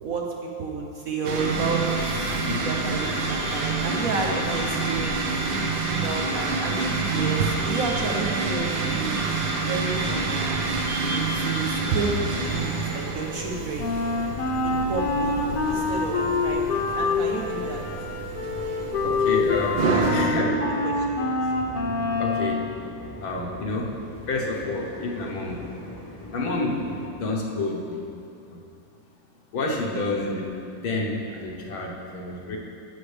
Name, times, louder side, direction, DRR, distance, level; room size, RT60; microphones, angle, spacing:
voice 1, 0.0-1.9 2.5-5.3 5.9-9.2 9.6-10.6 11.0-13.9 14.6-15.3 15.7-17.8 19.9-20.1 20.8-21.0, right 4 dB, 60° right, 0 dB, 1.0 m, -31 dB
sound 1, 1.2-20.1, right 3 dB, 75° right, 1.7 m, -28 dB
voice 2, 2.4-2.7 19.0-20.6 22.2-22.7 23.2-23.9 24.3-25.6 26.3-28.1 28.5-28.6 29.5-30.4 30.8-32.6, left 2 dB, 85° left, -1 dB, 2.0 m, -29 dB
sound 2, 7.9-27.1, left 1 dB, 25° left, 0.9 m, -40 dB
Wind instrument woodwind instrument, 13.8-22.6, left 3 dB, 65° left, 1.5 m, -26 dB
11.5 x 8.7 x 3.4 m, 2.7 s
omnidirectional pair, 2.1 m